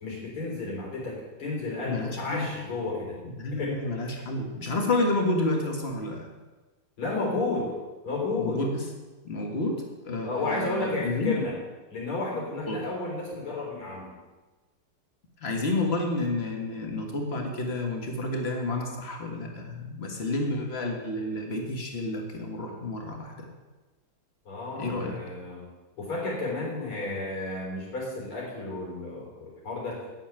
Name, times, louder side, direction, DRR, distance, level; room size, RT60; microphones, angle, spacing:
voice 1, 0.0-3.2 3.5-3.8 4.1-4.2 7.0-7.7 8.0-8.7 10.2-11.5 11.9-14.1 24.4-25.7 26.0-30.0, left 2 dB, 80° left, -3 dB, 4.7 m, -32 dB
voice 2, 1.8-2.5 3.4-6.3 8.3-8.8 9.2-11.4 12.7-12.8 15.4-23.5 24.8-25.2, left 2 dB, 30° left, 2 dB, 1.8 m, -30 dB
9.0 x 7.1 x 8.9 m, 1.2 s
omnidirectional pair, 2.3 m